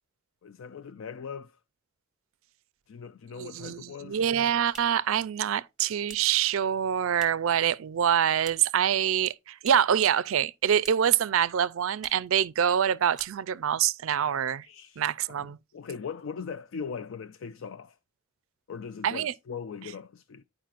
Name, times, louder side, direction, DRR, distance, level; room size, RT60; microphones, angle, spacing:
voice 1, 0.4-1.6 2.9-4.2 14.6-18.0 18.7-20.4, left 6 dB, 60° left, 0.4 m, -40 dB
voice 2, 3.4-14.7 15.0-15.6 19.0-19.3, right 9 dB, 65° right, 0.4 m, -25 dB
sound 1, 4.6-7.6 7.9-8.9 9.1-10.0 10.3-11.2 11.5-11.6 11.9-12.3 12.7-12.8 13.1-13.7, right 3 dB, ahead, 0.9 m, -51 dB
11.5 x 4.9 x 2.4 m
head